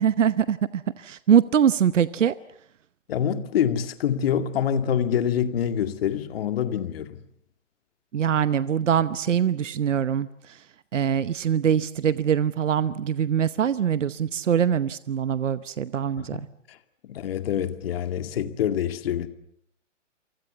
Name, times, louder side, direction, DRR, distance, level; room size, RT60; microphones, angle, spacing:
voice 1, 0.0-2.3 8.1-10.6 10.9-16.5, right 8 dB, 75° right, 1.0 m, -23 dB
voice 2, 3.1-7.2 16.2-16.8 17.0-19.3, left 9 dB, 50° left, 2.2 m, -26 dB
29.0 x 24.5 x 6.9 m
hypercardioid pair, 130°, 37 cm